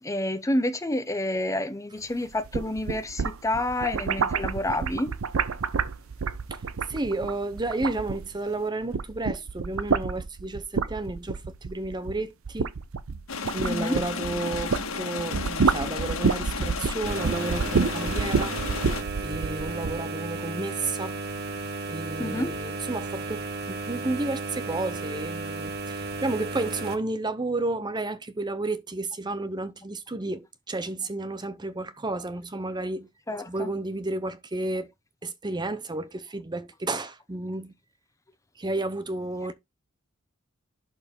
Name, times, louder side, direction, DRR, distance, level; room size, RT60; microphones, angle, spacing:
voice 1, 0.0-5.2 13.6-14.0 22.2-22.6 33.3-33.7, left 1 dB, 15° left, 0.7 m, -29 dB
sound 1, 2.3-8.5 8.8-14.9 15.2-20.0, right 5 dB, 85° right, 0.6 m, -28 dB
voice 2, 6.9-12.7 13.5-18.6 18.9-21.2 21.9-33.1 33.5-34.9 35.2-37.7 38.6-39.5, right 2 dB, 20° right, 0.8 m, -32 dB
sound 2, 13.3-19.0, left 4 dB, 90° left, 1.5 m, -33 dB
sound 3, 17.1-27.0, right 3 dB, 50° right, 1.3 m, -34 dB
11.5 x 4.5 x 3.6 m
head